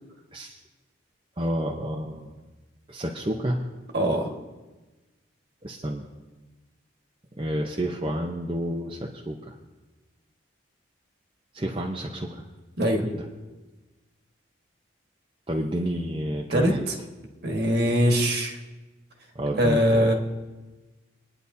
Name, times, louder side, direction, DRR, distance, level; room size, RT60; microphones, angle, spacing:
voice 1, 1.4-2.3 2.9-3.7 5.6-6.1 7.4-9.5 11.5-12.4 13.0-13.2 15.5-16.9 19.3-20.1, equal, 25° right, -1 dB, 0.8 m, -30 dB
voice 2, 3.9-4.3 12.8-13.0 16.5-16.9 17.4-18.6 19.5-20.1, equal, 55° right, 2 dB, 1.6 m, -22 dB
28.0 x 9.9 x 2.7 m, 1.2 s
head